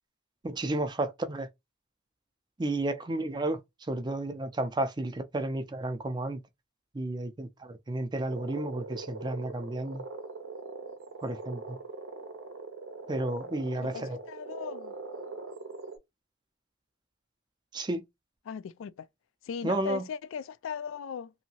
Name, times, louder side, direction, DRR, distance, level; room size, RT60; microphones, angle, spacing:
voice 1, 0.4-1.5 2.6-3.6 3.9-6.4 6.9-10.0 11.2-11.8 13.1-14.2 17.7-18.0 19.6-20.0, right 2 dB, 20° right, 0.4 m, -32 dB
sound 1, 8.3-16.0, right 3 dB, 70° right, 0.6 m, -42 dB
voice 2, 13.8-14.9 18.5-19.1 19.4-21.3, left 7 dB, 65° left, 0.3 m, -38 dB
2.8 x 2.6 x 2.8 m
head